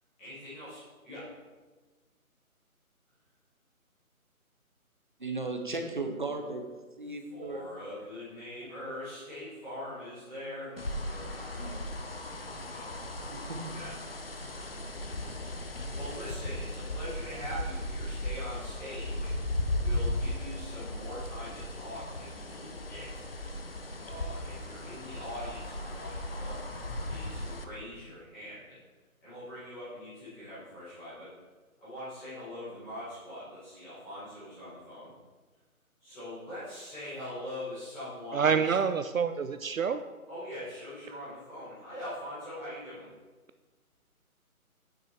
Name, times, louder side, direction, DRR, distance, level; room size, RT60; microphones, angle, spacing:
voice 1, 0.2-1.3 7.3-11.5 12.7-12.9 13.7-13.9 15.9-19.3 19.7-23.2 24.0-26.6 27.1-28.8 29.2-31.3 31.8-35.1 36.0-38.7 40.3-43.1, left 1 dB, 5° left, -17 dB, 1.4 m, -42 dB
voice 2, 5.2-6.7 7.0-7.6 8.6-8.8 11.6-11.8 13.3-13.8, right 2 dB, 35° right, 4 dB, 0.8 m, -36 dB
sound 1, 10.8-27.6, left 1 dB, 40° left, 0.6 m, -36 dB
voice 3, 38.3-40.0, right 6 dB, 65° right, 10 dB, 0.5 m, -27 dB
8.8 x 5.9 x 4.4 m, 1.3 s
hypercardioid pair, 175°, 44 cm